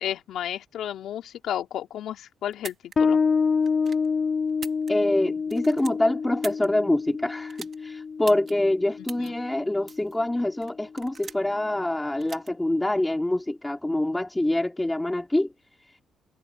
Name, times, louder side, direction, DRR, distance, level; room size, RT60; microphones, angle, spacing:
voice 1, 0.0-3.2 9.0-9.3, left 10 dB, 70° left, 2.8 m, -33 dB
sound 1, 2.5-3.0 3.6-4.1 4.5-5.2 5.5-6.7 7.5-7.8 8.3-8.5 9.1-9.3 9.9-10.1 10.6-11.5 12.2-12.5, right 6 dB, 45° right, 3.0 m, -41 dB
Bass guitar, 3.0-10.1, left 5 dB, 35° left, 0.5 m, -27 dB
voice 2, 4.9-15.5, left 1 dB, 10° left, 2.6 m, -25 dB
cardioid pair, 115°, 0 cm